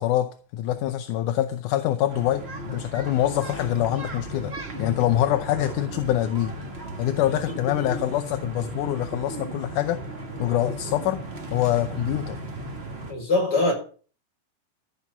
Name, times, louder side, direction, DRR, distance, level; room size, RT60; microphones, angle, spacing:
voice 1, 0.0-4.5 4.8-6.6 7.0-10.0 10.4-11.2 11.5-12.4, left 12 dB, 80° left, 2.1 m, -25 dB
sound 1, 2.1-13.1, right 1 dB, 30° right, 1.2 m, -36 dB
voice 2, 7.5-7.8 10.5-10.6 13.1-13.7, left 2 dB, 30° left, 5.7 m, -25 dB
15.0 x 6.1 x 7.1 m
omnidirectional pair, 3.8 m